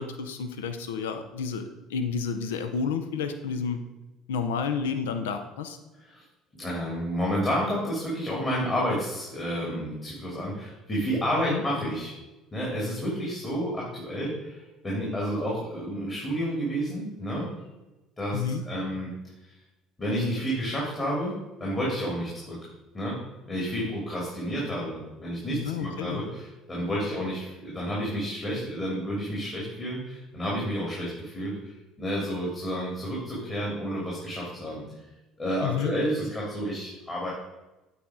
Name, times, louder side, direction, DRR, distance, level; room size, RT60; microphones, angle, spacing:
voice 1, 0.0-1.6 1.9-3.8 4.3-5.8 11.5-11.6 18.3-18.6 25.5-26.2 35.6-35.9, left 6 dB, 85° left, 8 dB, 0.6 m, -30 dB
voice 2, 6.5-12.1 12.5-17.5 18.2-18.4 18.6-19.1 20.0-22.6 22.9-23.2 23.5-34.9 35.4-37.3, equal, 30° left, -5 dB, 2.8 m, -30 dB
8.5 x 4.2 x 4.9 m, 1.1 s
hypercardioid pair, 65°, 0 cm